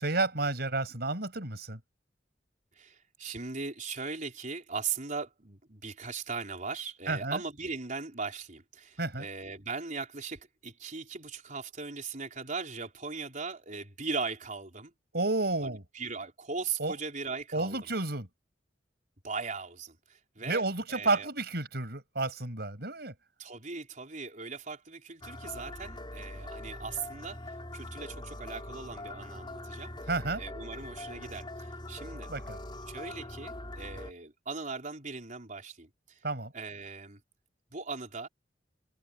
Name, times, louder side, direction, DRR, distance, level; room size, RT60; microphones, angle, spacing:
voice 1, 0.0-1.8 7.1-7.4 9.0-9.3 15.1-15.8 16.8-16.9 17.5-18.3 20.5-23.1 30.1-30.4 32.3-32.6 36.2-36.5, right 2 dB, 60° right, 5.9 m, -31 dB
voice 2, 2.8-14.9 15.6-17.8 19.2-20.6 20.9-21.3 23.4-29.9 30.4-32.3 32.9-36.2 36.5-37.2 37.7-38.3, right 4 dB, 45° right, 4.3 m, -39 dB
sound 1, 25.2-34.1, left 1 dB, 25° left, 4.1 m, -42 dB
head